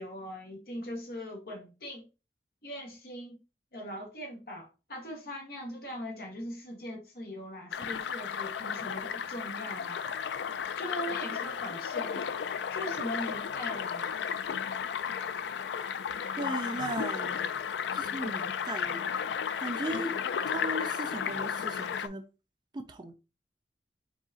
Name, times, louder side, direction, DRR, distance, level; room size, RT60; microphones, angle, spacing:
voice 1, 0.0-2.1 2.6-3.4 3.7-10.0 10.8-12.3 12.7-14.2, equal, 55° left, 1.4 m, -40 dB
sound 1, 7.7-22.1, left 7 dB, 75° left, 0.4 m, -34 dB
voice 2, 16.4-17.6 17.9-19.1 19.6-20.1 20.5-22.2 22.7-23.2, right 2 dB, 25° right, 0.3 m, -37 dB
4.6 x 3.9 x 2.7 m
head